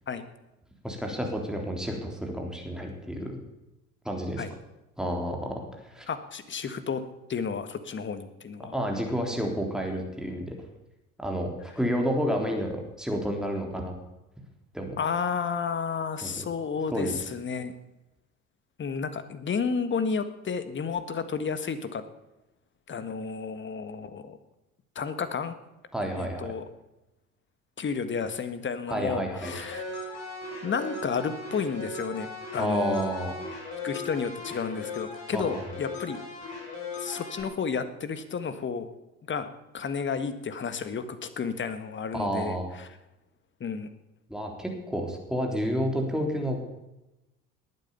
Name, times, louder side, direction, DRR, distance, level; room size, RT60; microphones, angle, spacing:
voice 1, 0.8-3.4 4.0-4.4 5.0-6.1 8.7-10.6 11.2-13.9 14.7-15.0 16.2-16.4 16.9-17.2 25.9-26.5 28.9-29.5 32.6-33.3 35.3-35.6 42.1-42.7 44.3-46.6, equal, ahead, 1 dB, 3.6 m, -30 dB
voice 2, 6.1-7.0 7.3-8.7 15.0-17.7 18.8-22.0 22.9-24.4 24.9-25.5 26.2-26.6 27.8-29.8 30.6-33.1 33.8-36.2 37.0-38.9 39.3-39.5 39.7-42.9 43.6-43.9, left 5 dB, 25° left, 11 dB, 1.6 m, -31 dB
sound 1, 29.4-37.4, left 3 dB, 60° left, 7.7 m, -38 dB
19.5 x 9.1 x 7.1 m, 0.95 s
figure-of-eight pair, 65°, 41 cm